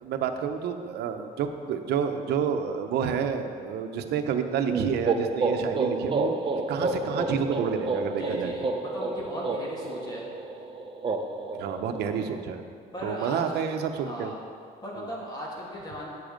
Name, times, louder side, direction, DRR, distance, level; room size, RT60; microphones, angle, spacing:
voice 1, 0.0-6.4 6.7-8.5 11.5-12.6 13.0-14.3 15.0-15.1, right 7 dB, 75° right, 6 dB, 0.9 m, -29 dB
sound 1, 4.7-12.4, right 3 dB, 30° right, 0.8 m, -30 dB
voice 2, 8.2-10.3 12.9-13.4 14.0-14.3 14.8-16.1, equal, 25° left, -4 dB, 2.8 m, -37 dB
10.5 x 8.4 x 5.2 m, 2.3 s
cardioid pair, 110°, 17 cm